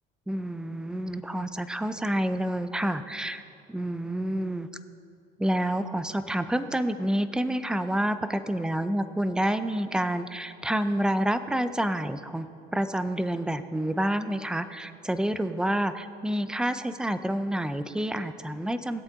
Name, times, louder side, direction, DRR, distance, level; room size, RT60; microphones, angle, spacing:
voice 1, 0.3-3.4 3.7-4.7 5.4-12.5 12.7-19.0, right 1 dB, 5° right, 11 dB, 0.6 m, -28 dB
20.0 x 8.1 x 3.7 m, 2.5 s
cardioid pair, 110°, 17 cm